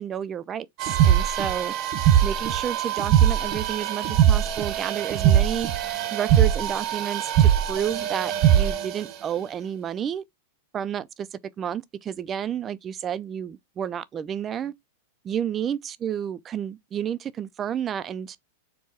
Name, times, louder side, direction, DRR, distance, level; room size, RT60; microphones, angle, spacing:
voice 1, 0.0-1.7 2.2-5.7 6.1-10.2 10.7-14.7 15.2-18.4, right 9 dB, 25° right, 0.4 m, -31 dB
sound 1, 0.8-9.0, right 10 dB, 40° right, 0.8 m, -21 dB
4.6 x 2.2 x 4.2 m
supercardioid pair, 135°, 0 cm